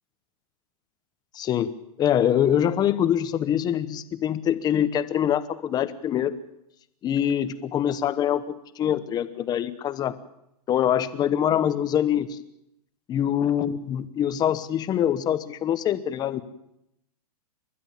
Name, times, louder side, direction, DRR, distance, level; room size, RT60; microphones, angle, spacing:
voice 1, 1.3-1.7 2.0-6.3 7.0-10.1 10.7-12.4 13.1-16.4, left 10 dB, 20° left, 12 dB, 1.0 m, -24 dB
30.0 x 12.5 x 7.3 m, 0.82 s
hypercardioid pair, 150°, 20 cm